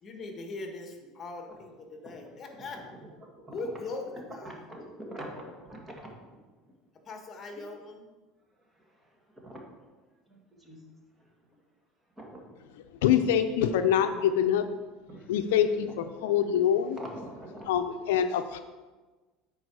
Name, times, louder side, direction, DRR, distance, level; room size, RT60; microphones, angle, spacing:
voice 1, 0.0-3.1 3.5-4.6 7.0-8.1, left 3 dB, 30° left, 3 dB, 1.4 m, -40 dB
voice 2, 3.2-3.6 4.4-6.1 9.4-9.6 10.3-10.8 11.2-11.3 12.2-12.4 15.1-15.3 17.0-17.7, right 1 dB, 15° right, -1 dB, 2.0 m, -44 dB
voice 3, 12.9-14.6 15.3-17.0 17.7-18.6, left 9 dB, 85° left, 9 dB, 0.5 m, -25 dB
8.9 x 4.7 x 4.7 m, 1.3 s
supercardioid pair, 105°, 0 cm